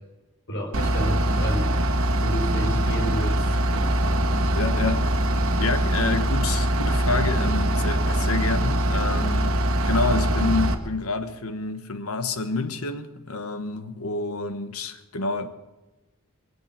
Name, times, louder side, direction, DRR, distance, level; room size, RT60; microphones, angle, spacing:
voice 1, 0.5-1.8 2.2-3.9 8.0-8.2, right 1 dB, 60° left, 4.1 m, -31 dB
Bus / Idling, 0.7-10.7, right 1 dB, 70° right, 1.4 m, -23 dB
voice 2, 2.7-3.0 4.5-5.1 5.6-9.6 9.9-15.5, left 3 dB, 80° left, 1.3 m, -28 dB
22.5 x 7.9 x 7.5 m
head